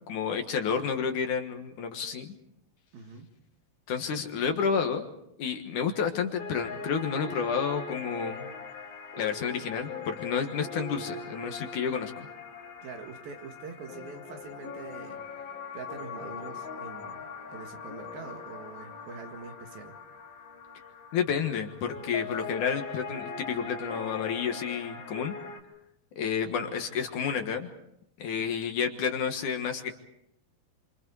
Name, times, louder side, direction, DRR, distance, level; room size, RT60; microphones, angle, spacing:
voice 1, 0.1-2.3 3.9-5.0 5.4-8.5 9.2-12.3 21.1-25.3 26.2-27.7 28.2-29.9, left 6 dB, 60° left, 5 dB, 2.7 m, -30 dB
voice 2, 2.9-3.3 12.8-15.2 15.7-20.0 26.4-26.8 28.4-28.5, right 5 dB, 75° right, 4 dB, 3.8 m, -44 dB
sound 1, 6.4-25.6, left 5 dB, 80° left, 4.2 m, -41 dB
28.5 x 26.0 x 4.8 m, 0.79 s
omnidirectional pair, 4.3 m